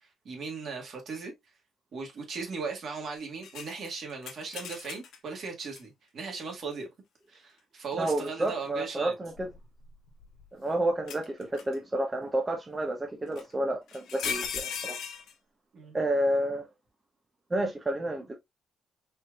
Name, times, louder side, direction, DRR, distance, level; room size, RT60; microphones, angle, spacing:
voice 1, 0.0-1.3 1.9-6.9 7.3-9.1 15.7-16.0, right 4 dB, 55° right, 1.8 m, -38 dB
sound 1, 3.4-5.2 5.8-5.9 7.9-8.5 9.3-10.4 11.1-11.8 13.4-13.5 13.9-15.3, left 7 dB, 80° left, 0.9 m, -37 dB
voice 2, 8.0-9.5 10.5-15.0 15.9-16.7 17.5-18.4, right 1 dB, 20° right, 0.8 m, -30 dB
4.3 x 3.2 x 2.4 m
cardioid pair, 90°, 0 cm